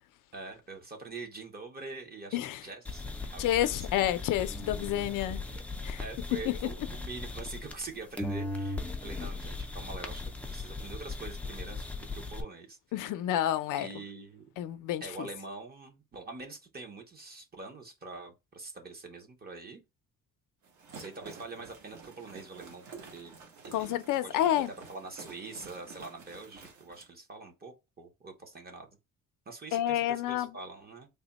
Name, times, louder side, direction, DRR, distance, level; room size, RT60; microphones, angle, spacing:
voice 1, 0.3-4.1 5.2-5.6 6.0-12.8 13.8-14.4 15.0-19.8 20.9-23.4 23.6-23.9 24.2-24.4 24.7-29.0 29.5-31.1, right 3 dB, 30° right, 0.7 m, -45 dB
sound 1, 2.8-7.9 8.2-12.4, left 3 dB, 5° left, 0.4 m, -38 dB
voice 2, 3.4-5.4 5.8-6.0 6.5-6.6 12.9-13.9 14.6-15.3 23.7-24.7 29.7-30.5, left 12 dB, 75° left, 0.5 m, -29 dB
sound 2, 20.6-27.1, right 4 dB, 65° right, 1.2 m, -50 dB
3.4 x 2.1 x 3.9 m
cardioid pair, 155°, 32 cm